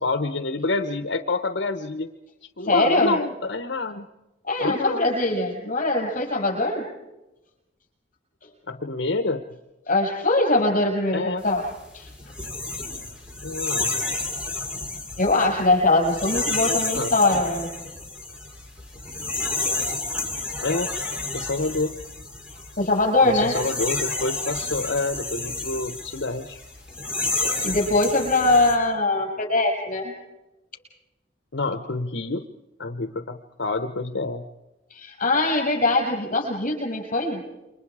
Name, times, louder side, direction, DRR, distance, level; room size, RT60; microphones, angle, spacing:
voice 1, 0.0-2.1 2.6-4.1 4.6-5.1 8.7-9.4 11.1-11.4 13.4-13.9 16.7-17.1 20.6-20.9 21.3-21.9 23.2-26.6 31.5-32.4 32.8-34.5, left 3 dB, 75° left, 8 dB, 1.1 m, -27 dB
voice 2, 2.7-3.2 4.5-6.8 9.9-11.6 11.9-12.1 15.2-17.7 22.8-23.5 27.6-30.1 34.9-37.4, left 2 dB, 45° left, 0 dB, 7.4 m, -22 dB
sound 1, 11.5-28.8, left 3 dB, 5° right, 3.8 m, -30 dB
29.0 x 25.0 x 4.9 m, 1.0 s
head